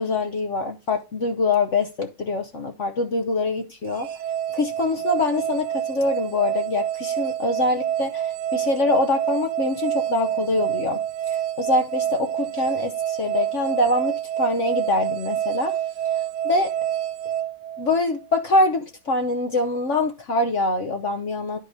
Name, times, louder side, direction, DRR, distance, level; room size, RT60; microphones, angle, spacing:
voice 1, 0.0-4.1 4.5-11.0 11.3-15.8 16.4-16.7 17.8-21.6, left 2 dB, 65° left, 0.7 m, -24 dB
sound 1, 3.9-18.3, right 11 dB, 80° right, 1.6 m, -28 dB
10.5 x 4.7 x 4.0 m
omnidirectional pair, 2.4 m